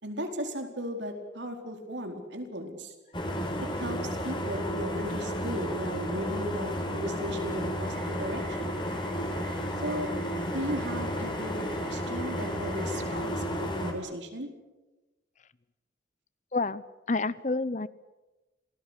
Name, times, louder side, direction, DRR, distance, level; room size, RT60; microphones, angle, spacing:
voice 1, 0.0-2.9 3.6-8.8 9.8-10.1 10.5-14.5, equal, 80° right, 5 dB, 4.4 m, -36 dB
sound 1, 3.1-13.9, equal, 25° left, 4.2 m, -32 dB
sound 2, 7.8-13.2, right 6 dB, 50° right, 4.6 m, -51 dB
voice 2, 16.5-17.9, left 3 dB, 40° left, 18 dB, 0.8 m, -29 dB
27.5 x 19.0 x 8.2 m, 1.1 s
head